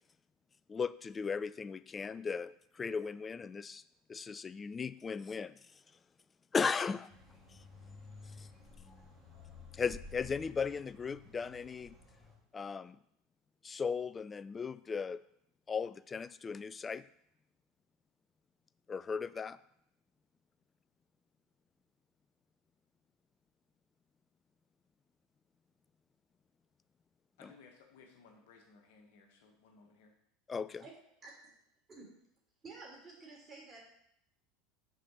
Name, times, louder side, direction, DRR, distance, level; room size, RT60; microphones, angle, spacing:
voice 1, 0.7-3.8 4.1-5.6 6.5-7.1 8.4-8.5 9.7-12.0 12.5-13.0 13.6-15.2 15.7-17.1 18.9-19.6 30.5-30.8, left 5 dB, 25° left, 17 dB, 0.4 m, -37 dB
sound 1, 7.1-12.4, left 3 dB, 5° right, 3.4 m, -53 dB
voice 2, 27.4-30.2, left 4 dB, 65° left, 2 dB, 1.6 m, -60 dB
voice 3, 32.6-33.8, right 3 dB, 25° right, -2 dB, 3.2 m, -51 dB
6.7 x 5.0 x 6.3 m, 0.73 s
figure-of-eight pair, 75°, 0 cm